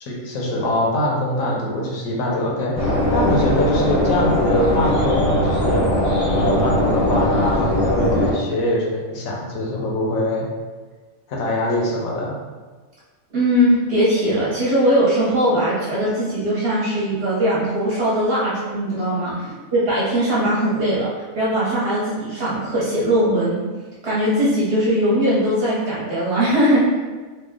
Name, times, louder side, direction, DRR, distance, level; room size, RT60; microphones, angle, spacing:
voice 1, 0.0-5.9 6.2-10.4 11.3-12.3 19.3-19.4, left 1 dB, 75° left, -3 dB, 1.1 m, -23 dB
sound 1, 2.7-8.3, left 1 dB, 20° left, 0.7 m, -19 dB
voice 2, 13.3-19.3 19.7-21.1 21.3-23.6 24.0-26.8, equal, 50° right, -8 dB, 1.1 m, -20 dB
3.2 x 2.2 x 3.5 m, 1.4 s
omnidirectional pair, 1.4 m